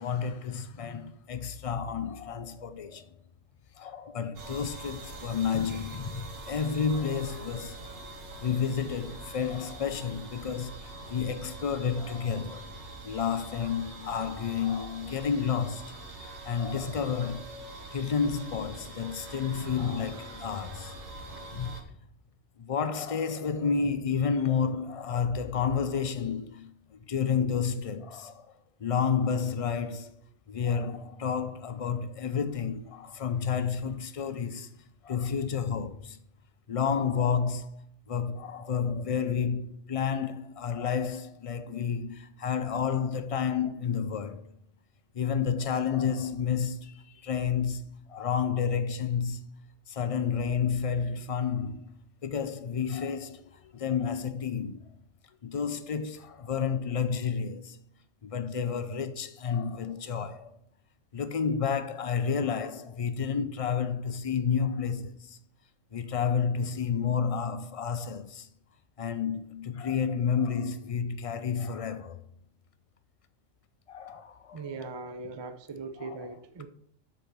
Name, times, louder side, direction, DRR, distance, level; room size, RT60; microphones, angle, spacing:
voice 1, 0.0-3.1 3.8-7.8 8.4-12.6 13.0-17.5 17.9-20.9 21.5-21.8 22.6-28.5 28.8-30.2 30.5-34.7 35.0-36.2 36.7-37.8 38.1-44.5 45.1-49.5 49.9-51.9 52.2-54.8 55.4-57.8 58.2-60.5 61.1-65.4 65.9-68.5 69.0-72.2 73.9-74.9 76.0-76.3, left 6 dB, 65° left, 0.3 m, -30 dB
sound 1, 4.4-21.8, right 2 dB, 85° right, 1.7 m, -44 dB
voice 2, 74.5-76.7, right 3 dB, 35° right, 0.4 m, -40 dB
7.7 x 4.1 x 6.8 m
omnidirectional pair, 1.3 m